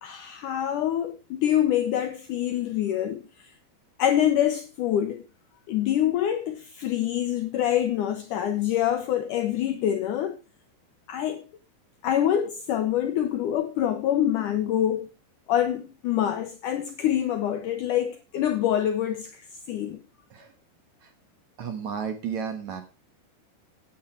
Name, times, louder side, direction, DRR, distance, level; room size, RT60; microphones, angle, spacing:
voice 1, 0.0-3.2 4.0-5.2 5.7-10.4 11.1-11.4 12.0-15.1 15.5-19.4 19.7-20.0, left 11 dB, 80° left, 1.9 m, -25 dB
voice 2, 21.6-22.8, right 7 dB, 60° right, 2.1 m, -33 dB
15.0 x 8.9 x 4.4 m
omnidirectional pair, 4.6 m